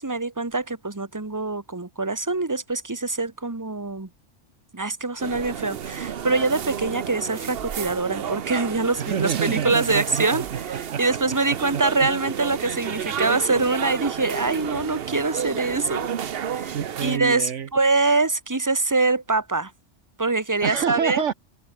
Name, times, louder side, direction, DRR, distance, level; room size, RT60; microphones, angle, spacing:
voice 1, 0.0-4.1 4.7-10.4 11.0-16.1 16.5-16.8 17.0-19.7 20.2-21.2, right 3 dB, 15° right, 1.6 m, -24 dB
sound 1, 5.2-17.2, right 8 dB, 55° right, 1.0 m, -31 dB
voice 2, 9.0-11.2 11.7-12.1 16.7-17.7 20.6-21.3, right 8 dB, 75° right, 1.3 m, -28 dB
omnidirectional pair, 1.3 m